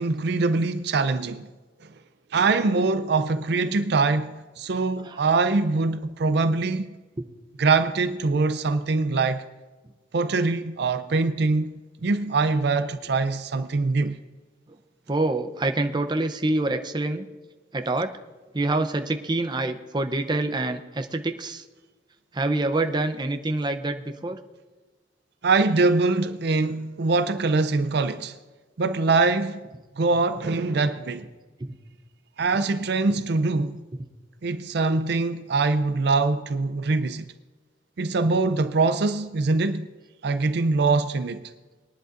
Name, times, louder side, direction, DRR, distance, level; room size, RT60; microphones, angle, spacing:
voice 1, 0.0-1.5 2.3-6.9 7.6-9.4 10.1-14.2 25.4-28.3 28.8-29.6 30.0-31.3 32.4-33.8 34.4-37.2 38.0-39.9 40.2-41.5, right 3 dB, 65° right, 0.5 m, -23 dB
voice 2, 15.1-17.2 17.7-18.1 18.5-21.6 22.3-24.4, right 2 dB, 25° right, 0.6 m, -26 dB
21.0 x 10.5 x 2.5 m
head